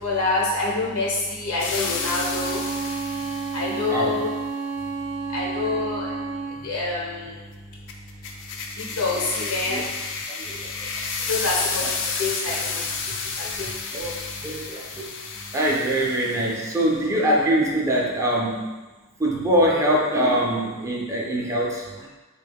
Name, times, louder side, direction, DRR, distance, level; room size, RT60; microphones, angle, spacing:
voice 1, 0.0-2.6 3.5-4.3 5.3-6.1 6.6-7.1 9.0-9.8 11.3-11.8 12.2-12.8 13.4-13.5 14.0-14.1, left 3 dB, 85° left, -4 dB, 1.0 m, -26 dB
sound 1, 1.6-3.9 7.9-16.8, left 4 dB, 60° left, 0.4 m, -31 dB
Bowed string instrument, 1.8-6.7, right 4 dB, 85° right, 0.4 m, -31 dB
voice 2, 10.3-11.0 13.1-13.2 13.4-13.5 13.9-14.1 14.4-15.1 15.5-18.7 19.2-22.1, equal, 15° right, -3 dB, 0.4 m, -23 dB
3.6 x 2.2 x 3.5 m, 1.2 s
head